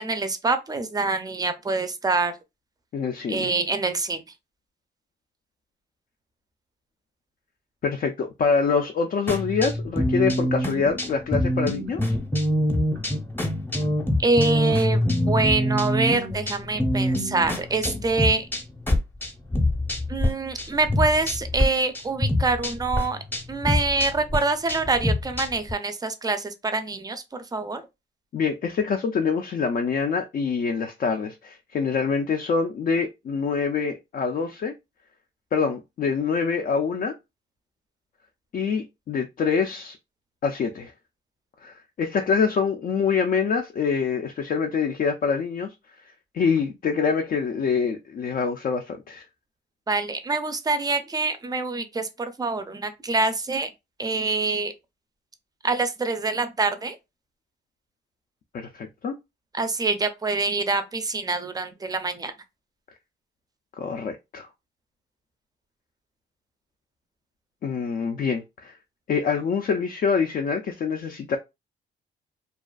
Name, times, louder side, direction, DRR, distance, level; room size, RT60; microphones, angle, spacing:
voice 1, 0.0-2.3 3.3-4.2 14.2-18.5 20.1-23.2 23.5-27.8 49.9-53.7 54.0-54.7 55.6-57.0 59.5-62.3, right 3 dB, 20° right, 0.5 m, -25 dB
voice 2, 2.9-3.5 7.8-12.1 28.3-34.7 35.5-37.1 38.5-40.0 40.4-40.9 41.6-45.7 46.3-49.2 58.5-59.1 63.8-64.5 67.6-68.7 69.1-71.4, left 5 dB, 45° left, 0.4 m, -25 dB
sound 1, 9.3-20.3 20.6-21.7 21.9-25.7, left 1 dB, 10° left, 0.8 m, -25 dB
2.4 x 2.3 x 2.3 m
cardioid pair, 90°, 20 cm